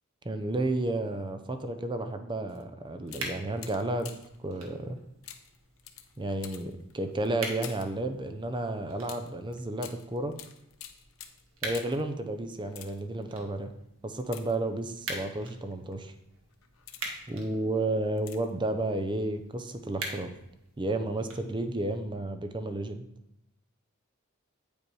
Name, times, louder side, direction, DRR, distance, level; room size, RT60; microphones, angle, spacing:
voice 1, 0.2-4.1 4.4-5.0 6.2-10.4 11.6-13.7 14.0-16.1 17.3-20.3 20.8-23.1, right 2 dB, 20° right, 8 dB, 0.6 m, -32 dB
sound 1, 2.5-2.6 3.0-4.4 5.2-8.0 9.0-12.1 12.6-13.2 14.2-15.0 15.7-15.9 16.5-17.3 18.2-18.6 18.9-19.0, left 10 dB, 75° left, 0.7 m, -48 dB
sound 2, 3.0-22.0, right 2 dB, 70° right, 1.7 m, -45 dB
8.6 x 5.2 x 4.7 m, 0.84 s
head